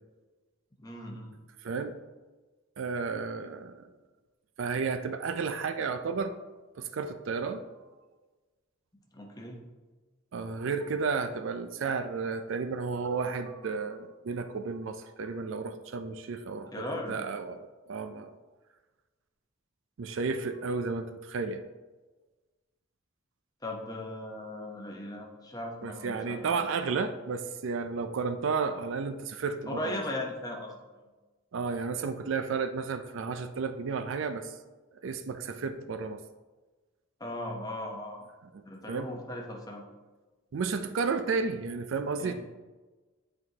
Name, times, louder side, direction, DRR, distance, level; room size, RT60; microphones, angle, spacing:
voice 1, 0.8-1.3 9.1-9.6 16.7-17.1 23.6-26.7 29.7-31.1 37.2-38.2 38.6-39.8 42.2-42.3, left 1 dB, 15° left, -1 dB, 0.8 m, -38 dB
voice 2, 1.6-1.9 2.8-3.9 4.6-6.4 6.8-7.6 10.3-18.3 20.0-21.6 25.8-30.0 31.5-34.5 35.0-36.2 38.5-38.6 38.9-39.1 40.5-42.3, right 4 dB, 65° right, 9 dB, 0.4 m, -32 dB
8.6 x 4.6 x 2.8 m, 1.2 s
head